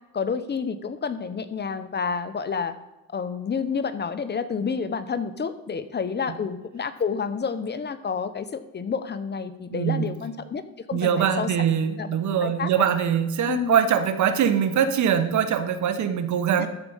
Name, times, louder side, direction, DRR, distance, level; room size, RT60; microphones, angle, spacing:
voice 1, 0.1-2.8 3.1-10.6 10.9-11.5 11.8-12.1 12.4-12.9 13.5-13.7 16.6-16.7, left 6 dB, 35° left, 11 dB, 0.8 m, -29 dB
voice 2, 9.7-10.1 10.9-16.7, right 8 dB, 70° right, 10 dB, 1.0 m, -23 dB
13.5 x 4.8 x 5.5 m, 0.99 s
cardioid pair, 90°, 30 cm